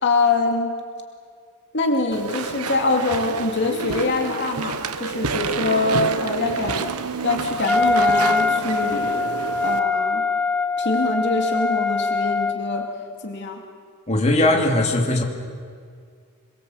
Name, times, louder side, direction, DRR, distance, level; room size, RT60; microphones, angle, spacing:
voice 1, 0.0-0.8 1.7-6.9 7.2-9.2 9.6-10.3 10.8-12.9 13.2-13.6, left 3 dB, 55° left, 2 dB, 2.6 m, -24 dB
Walk footsteps / Chatter / Squeak, 2.1-9.8, right 4 dB, 80° right, 1.2 m, -29 dB
Wind instrument woodwind instrument, 7.7-12.9, left 4 dB, 5° left, 0.9 m, -22 dB
voice 2, 14.1-15.2, left 1 dB, 30° left, 1 dB, 2.9 m, -19 dB
26.5 x 22.5 x 8.0 m, 2.1 s
head